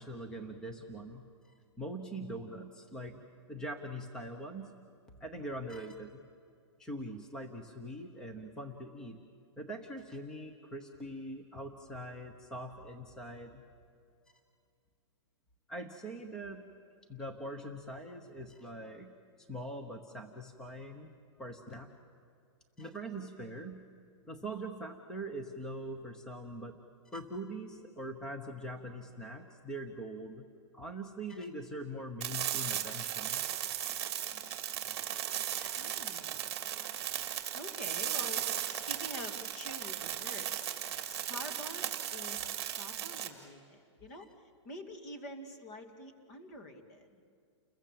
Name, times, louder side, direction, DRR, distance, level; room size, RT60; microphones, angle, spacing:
voice 1, 0.0-4.7 5.2-6.2 6.8-9.2 9.6-13.6 15.7-16.6 17.1-19.1 19.4-21.1 21.4-21.9 22.8-23.8 24.3-26.8 27.1-30.5 30.7-33.4 35.6-35.8 44.1-44.2, right 1 dB, 5° left, 4 dB, 0.8 m, -43 dB
sound 1, 32.2-43.3, right 11 dB, 25° right, 2.5 m, -36 dB
voice 2, 35.7-36.4 37.5-40.7 41.1-44.3 44.6-47.2, left 1 dB, 35° left, 5 dB, 2.3 m, -47 dB
29.5 x 22.0 x 7.5 m, 2.4 s
hypercardioid pair, 175°, 15 cm